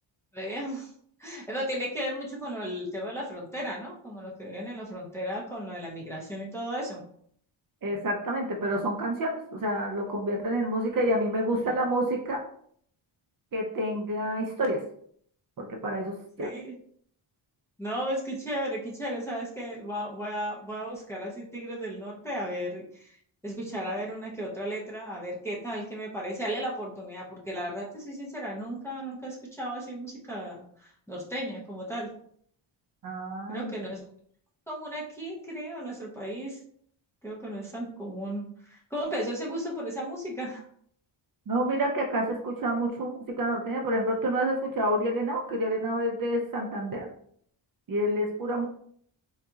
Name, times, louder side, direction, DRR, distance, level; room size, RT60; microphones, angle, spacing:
voice 1, 0.3-0.9 1.2-7.0 11.6-11.7 16.4-16.8 17.8-23.2 23.4-32.1 33.5-34.1 34.7-36.6 37.2-40.7, equal, 5° left, -4 dB, 0.6 m, -35 dB
voice 2, 7.8-12.4 13.5-14.8 15.6-16.5 33.0-33.7 41.5-47.1 47.9-48.7, right 1 dB, 45° right, 0 dB, 0.5 m, -28 dB
3.9 x 2.7 x 2.3 m, 0.63 s
wide cardioid pair, 160°, 49 cm